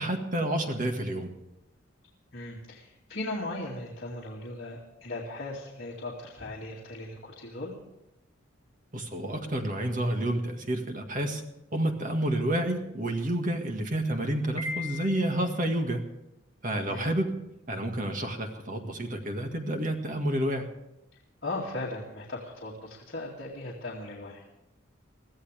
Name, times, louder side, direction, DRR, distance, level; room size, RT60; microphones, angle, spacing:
voice 1, 0.0-1.4 8.9-11.4 11.7-16.0 16.6-17.3 17.7-20.7, right 1 dB, 40° right, 4 dB, 1.9 m, -29 dB
voice 2, 2.3-7.8 16.9-17.1 21.4-24.4, left 2 dB, 55° left, -4 dB, 2.5 m, -37 dB
Piano, 14.6-15.6, left 3 dB, 25° left, 8.0 m, -37 dB
22.5 x 14.5 x 3.5 m, 0.89 s
head